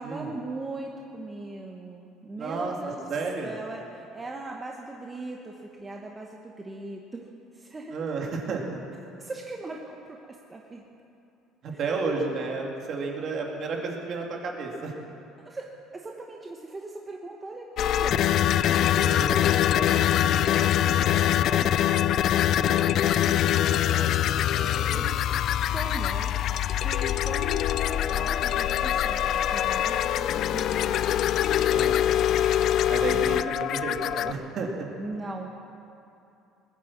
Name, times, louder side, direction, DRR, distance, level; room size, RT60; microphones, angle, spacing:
voice 1, 0.0-3.1 3.4-7.3 7.5-8.0 9.2-10.2 10.5-10.8 11.7-11.8 15.4-15.7 15.9-22.3 22.8-25.3 25.5-26.4 26.8-31.1 33.1-33.4 35.0-35.5, right 2 dB, 15° right, 0 dB, 1.0 m, -40 dB
voice 2, 2.4-2.8 3.1-3.6 7.9-8.8 11.6-14.9 19.0-19.4 22.6-22.9 24.9-25.2 31.7-32.0 32.9-34.9, right 4 dB, 40° right, 0 dB, 2.4 m, -32 dB
sound 1, 17.8-34.3, left 11 dB, 50° left, 0.4 m, -24 dB
sound 2, 18.6-22.3, left 5 dB, 35° left, 1.0 m, -43 dB
20.0 x 9.7 x 7.4 m, 2.8 s
cardioid pair, 150°, 0 cm